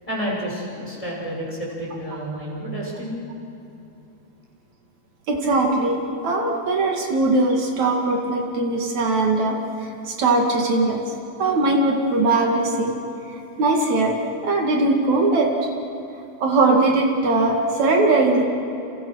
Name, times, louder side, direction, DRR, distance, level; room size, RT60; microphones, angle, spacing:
voice 1, 0.1-3.2, equal, 10° left, -4 dB, 6.3 m, -30 dB
voice 2, 5.3-11.0 11.4-12.9 13.6-14.2 14.4-15.7 16.4-18.4, right 2 dB, 70° right, 1 dB, 3.4 m, -20 dB
29.5 x 29.0 x 6.4 m, 3.0 s
omnidirectional pair, 3.4 m